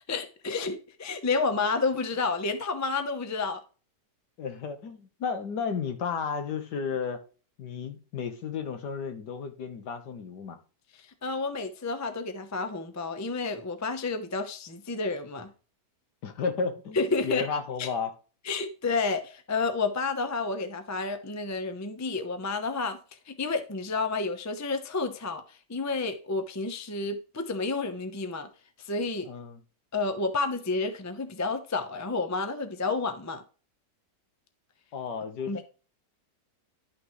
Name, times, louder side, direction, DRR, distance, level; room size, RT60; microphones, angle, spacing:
voice 1, 0.1-3.6 11.2-15.5 16.9-17.5 17.8-17.9 18.4-23.0 23.3-25.4 25.7-28.5 28.8-29.3 29.9-33.4 35.5-35.6, left 3 dB, 20° left, 0.5 m, -30 dB
voice 2, 4.4-7.2 7.6-10.6 16.2-18.1 29.3-29.6 34.9-35.6, left 5 dB, 75° left, 1.8 m, -33 dB
11.0 x 6.1 x 3.1 m
omnidirectional pair, 1.8 m